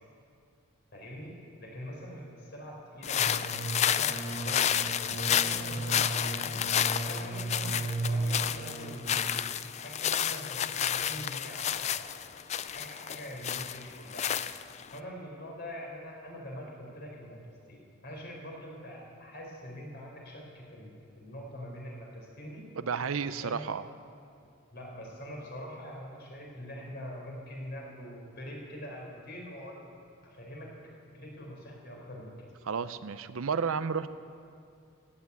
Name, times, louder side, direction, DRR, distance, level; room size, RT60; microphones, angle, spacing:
voice 1, 0.9-1.3 1.6-4.9 5.2-6.6 6.9-9.5 9.8-12.1 12.7-14.2 14.9-22.6 23.4-23.6 24.7-29.9 30.2-30.7 31.1-32.3, equal, 50° left, -2 dB, 4.2 m, -44 dB
sound 1, 3.0-15.0, left 9 dB, 30° left, 0.3 m, -31 dB
sound 2, 3.2-9.2, right 2 dB, 20° right, 1.5 m, -36 dB
voice 2, 22.8-23.9 32.6-34.1, right 6 dB, 70° right, 13 dB, 0.5 m, -32 dB
15.5 x 9.8 x 8.4 m, 2.4 s
head